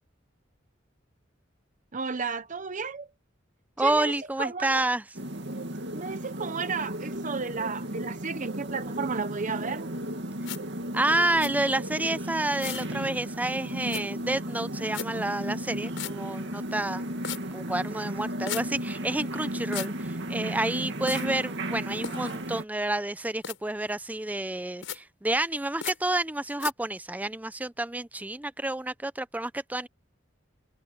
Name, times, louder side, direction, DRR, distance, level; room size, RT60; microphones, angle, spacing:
voice 1, 1.9-3.1 3.8-4.1 4.4-4.9 5.9-9.9, right 5 dB, 40° right, 0.9 m, -33 dB
voice 2, 3.8-5.0 10.9-17.1 17.5-29.9, right 2 dB, 10° right, 0.5 m, -29 dB
sound 1, 5.1-22.6, right 1 dB, 65° right, 2.4 m, -35 dB
sound 2, 10.4-10.6 11.4-11.5 12.6-12.9 13.9-14.0 14.9-15.1 16.0-16.1 17.2-17.4 18.5-18.6 19.7-19.9 21.1-21.3 22.0-22.4 23.4-23.6 24.8-25.0 25.8-26.0 26.6-26.7, left 8 dB, 80° left, 5.8 m, -35 dB
head